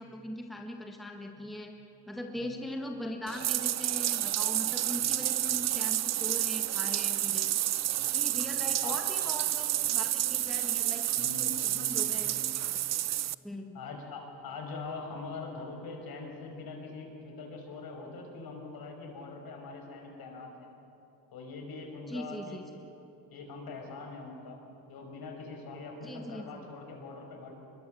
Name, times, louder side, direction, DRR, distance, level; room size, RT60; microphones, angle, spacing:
voice 1, 0.0-1.7 2.1-7.6 8.1-12.9 13.4-13.8 22.1-22.8 26.0-26.4, left 1 dB, ahead, 2 dB, 1.6 m, -41 dB
Bathtub (filling or washing), 3.3-13.3, right 13 dB, 40° right, 0.5 m, -30 dB
voice 2, 8.0-8.6 8.8-9.0 11.2-12.0 12.3-12.5 13.7-20.7 21.3-22.6 23.3-24.6 24.9-27.5, left 3 dB, 55° left, 3 dB, 5.7 m, -43 dB
25.5 x 22.0 x 7.8 m, 2.9 s
cardioid pair, 115°, 42 cm